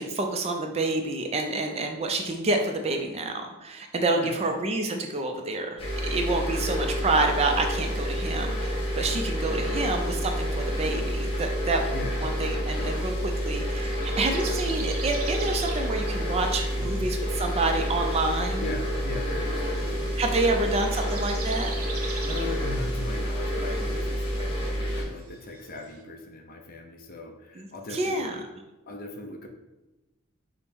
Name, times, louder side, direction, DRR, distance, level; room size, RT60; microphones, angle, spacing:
voice 1, 0.0-3.3 3.6-11.9 12.2-18.6 20.2-21.7 27.6-27.7 27.9-28.3, right 2 dB, 30° right, 4 dB, 0.3 m, -28 dB
voice 2, 4.1-4.6 9.5-9.9 11.9-12.3 16.8-17.1 18.6-21.0 22.2-28.4 28.9-29.5, left 2 dB, 40° left, 3 dB, 0.6 m, -39 dB
sound 1, 5.8-25.0, equal, 25° left, 1.0 m, -29 dB
sound 2, 10.7-26.0, right 5 dB, 85° right, 0.7 m, -44 dB
5.2 x 2.1 x 4.4 m, 1.0 s
head